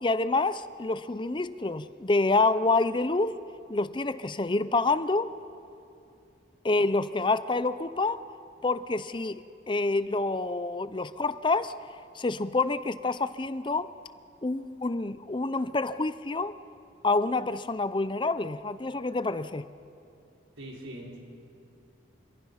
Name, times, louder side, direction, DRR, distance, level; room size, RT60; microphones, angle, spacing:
voice 1, 0.0-3.3 3.7-5.3 6.6-8.2 8.6-11.8 12.2-13.9 14.4-16.5 17.0-19.6, left 3 dB, 25° left, 14 dB, 0.5 m, -27 dB
voice 2, 20.6-21.2, right 1 dB, 85° right, -1 dB, 5.2 m, -41 dB
30.0 x 26.5 x 5.7 m, 2.6 s
head